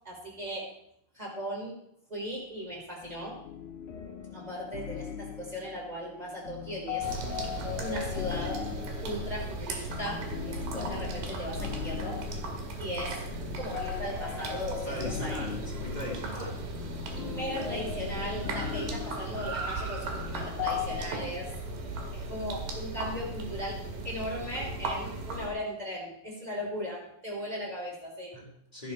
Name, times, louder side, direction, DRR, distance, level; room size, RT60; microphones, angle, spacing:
voice 1, 0.0-0.7 1.1-1.7 2.1-3.3 4.3-7.1 7.8-8.6 9.0-12.2 12.8-13.1 13.6-15.3 17.1-21.5 22.1-23.8 24.0-28.3, equal, 10° right, -2 dB, 3.9 m, -37 dB
sound 1, 3.0-21.1, left 9 dB, 75° left, 1.9 m, -39 dB
sound 2, 7.0-25.5, right 2 dB, 70° right, 3.6 m, -37 dB
Car, 14.2-23.1, right 4 dB, 50° right, 1.7 m, -46 dB
voice 2, 14.8-16.6 28.3-28.9, left 1 dB, 10° left, -1 dB, 2.8 m, -39 dB
15.0 x 11.0 x 4.4 m, 0.73 s
omnidirectional pair, 4.3 m